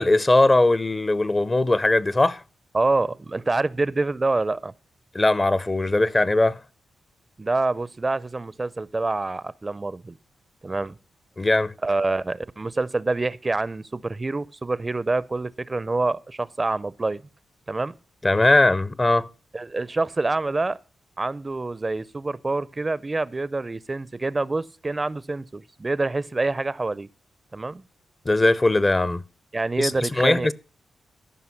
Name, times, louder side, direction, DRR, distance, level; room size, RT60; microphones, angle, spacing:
voice 1, 0.0-2.4 5.1-6.6 11.4-11.7 18.2-19.3 28.3-29.2 29.8-29.9 30.2-30.5, left 2 dB, 25° left, 0.5 m, -20 dB
voice 2, 2.7-4.7 7.4-10.2 10.6-11.0 11.8-17.2 17.7-17.9 19.5-20.8 21.2-27.1 27.5-27.8 29.5-30.5, right 3 dB, 30° right, 0.4 m, -26 dB
14.0 x 5.7 x 5.7 m
cardioid pair, 70°, 0 cm